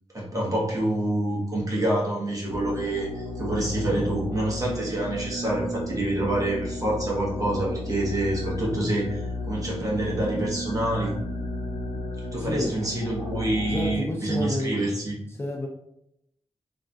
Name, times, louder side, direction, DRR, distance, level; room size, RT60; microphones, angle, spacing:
voice 1, 0.1-9.2 9.5-11.1 12.3-15.2, right 1 dB, 30° right, -4 dB, 0.9 m, -27 dB
sound 1, 2.5-14.0, left 1 dB, 55° left, 0.7 m, -34 dB
Drum, 3.9-5.6, right 2 dB, 80° right, 0.6 m, -45 dB
voice 2, 12.4-12.8 13.6-14.9 15.3-15.7, left 1 dB, 25° left, -1 dB, 0.4 m, -30 dB
3.1 x 2.5 x 2.3 m, 0.78 s
wide cardioid pair, 130°, 11 cm